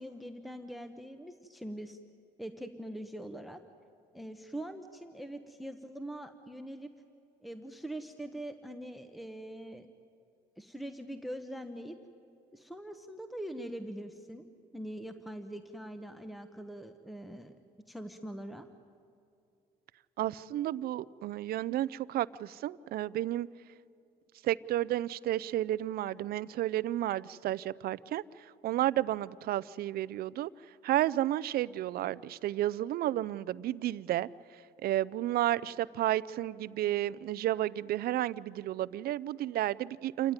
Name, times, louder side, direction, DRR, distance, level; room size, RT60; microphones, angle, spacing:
voice 1, 0.0-2.0 2.4-3.6 4.1-6.9 7.4-9.9 10.6-12.0 12.5-14.5 14.7-17.6 17.9-18.7, right 1 dB, ahead, 8 dB, 1.0 m, -43 dB
voice 2, 20.2-23.5 24.4-30.5 30.8-34.3 34.8-40.3, right 13 dB, 65° right, 19 dB, 0.5 m, -32 dB
27.5 x 14.5 x 9.7 m, 2.6 s
cardioid pair, 110°, 17 cm